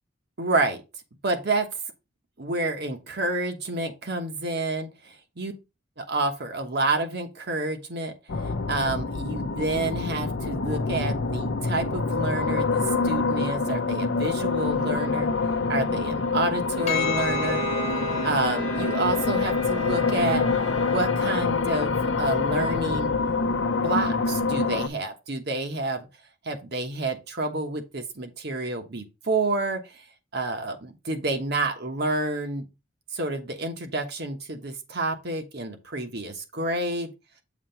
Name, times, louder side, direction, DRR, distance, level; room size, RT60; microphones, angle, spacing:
voice 1, 0.4-0.8 1.2-1.7 2.4-5.5 6.1-8.1 8.7-15.3 15.7-17.6 18.2-20.4 20.9-23.1 23.8-26.1 26.4-30.0 30.3-32.7 33.1-37.1, right 2 dB, 55° right, 1.2 m, -29 dB
sound 1, 8.3-24.9, left 4 dB, 65° left, 0.6 m, -26 dB
Bowed string instrument, 16.8-21.6, right 5 dB, 90° right, 3.8 m, -36 dB
Percussion, 16.9-21.5, left 7 dB, 35° left, 0.9 m, -35 dB
7.3 x 3.0 x 5.7 m
head